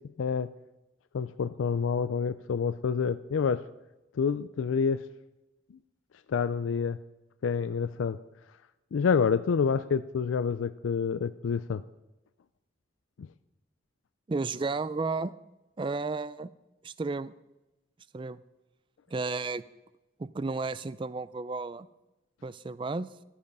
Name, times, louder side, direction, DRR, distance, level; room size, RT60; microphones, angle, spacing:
voice 1, 0.2-0.5 1.1-3.6 4.2-5.0 6.3-7.0 7.4-8.2 8.9-11.8 13.2-13.3, left 6 dB, 85° left, 14 dB, 0.4 m, -28 dB
voice 2, 14.3-15.4 15.8-16.5 16.8-17.3 18.1-18.4 19.1-19.6 20.2-21.9 22.4-23.1, right 3 dB, 25° right, 17 dB, 0.3 m, -32 dB
13.0 x 10.0 x 5.4 m, 1.0 s
head